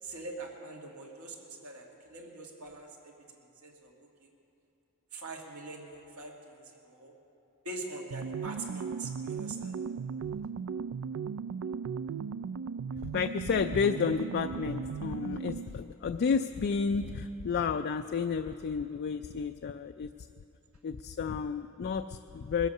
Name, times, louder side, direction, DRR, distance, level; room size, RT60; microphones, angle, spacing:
voice 1, 0.0-4.3 5.1-7.1 7.6-9.8, right 2 dB, 85° right, -1 dB, 2.1 m, -44 dB
sound 1, 8.1-15.8, right 6 dB, 65° right, 0.3 m, -37 dB
voice 2, 13.0-20.1 20.8-22.7, left 5 dB, 50° left, 8 dB, 0.3 m, -31 dB
21.0 x 8.2 x 6.6 m, 2.7 s
head